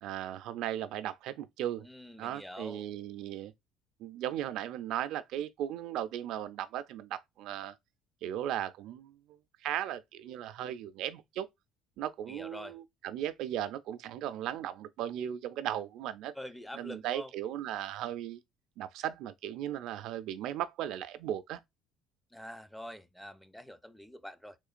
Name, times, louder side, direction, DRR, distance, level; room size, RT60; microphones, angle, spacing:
voice 1, 0.0-1.9 2.2-3.5 4.0-7.7 8.2-9.2 9.6-11.5 12.0-16.3 16.7-18.4 18.8-21.6, right 11 dB, 70° right, 0.4 m, -37 dB
voice 2, 1.8-2.8 12.3-12.8 16.3-17.3 22.3-24.6, equal, 5° left, 0.4 m, -45 dB
3.7 x 3.1 x 2.5 m
cardioid pair, 105°, 0 cm